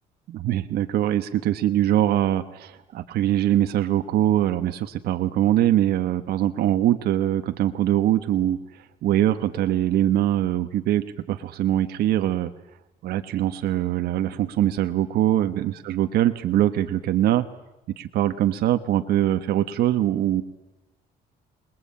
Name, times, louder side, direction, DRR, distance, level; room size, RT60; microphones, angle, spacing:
voice 1, 0.3-12.5 13.0-17.5 18.0-20.4, right 12 dB, 70° right, 8 dB, 1.2 m, -23 dB
27.0 x 20.5 x 8.7 m, 0.98 s
cardioid pair, 110°, 17 cm